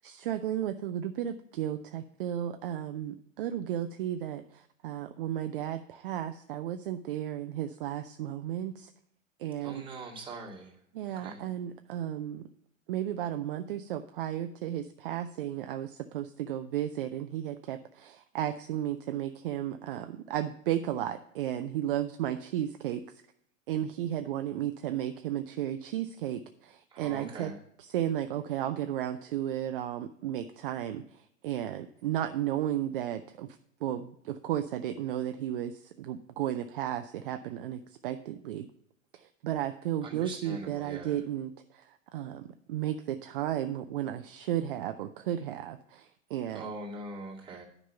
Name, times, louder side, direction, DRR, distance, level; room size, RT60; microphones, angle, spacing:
voice 1, 0.0-8.9 9.4-9.8 10.9-12.5 12.9-23.0 23.7-27.5 27.8-38.7 39.1-46.7, right 11 dB, 45° right, 9 dB, 0.5 m, -34 dB
voice 2, 9.6-10.7 11.2-11.4 26.9-27.6 40.0-41.2 46.5-47.6, right 2 dB, 15° right, -3 dB, 2.3 m, -42 dB
10.0 x 5.4 x 5.6 m, 0.72 s
figure-of-eight pair, 95°, 39 cm